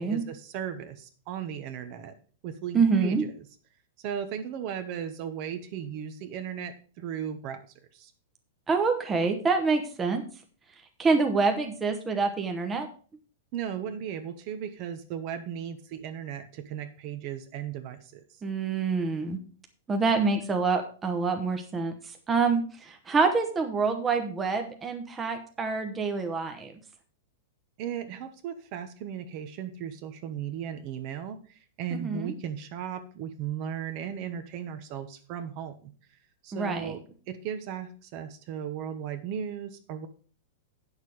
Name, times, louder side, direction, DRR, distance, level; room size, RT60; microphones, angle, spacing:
voice 1, 0.0-2.1 2.4-3.3 4.0-7.7 7.9-8.1 13.5-18.2 27.8-35.9 36.4-40.1, right 8 dB, 40° right, 9 dB, 1.0 m, -36 dB
voice 2, 2.7-3.2 8.7-10.2 11.0-12.9 18.4-19.4 19.9-21.9 22.3-26.7 31.9-32.3 36.5-36.9, right 4 dB, 10° right, 4 dB, 1.0 m, -26 dB
9.2 x 6.6 x 4.8 m, 0.42 s
supercardioid pair, 165°, 0 cm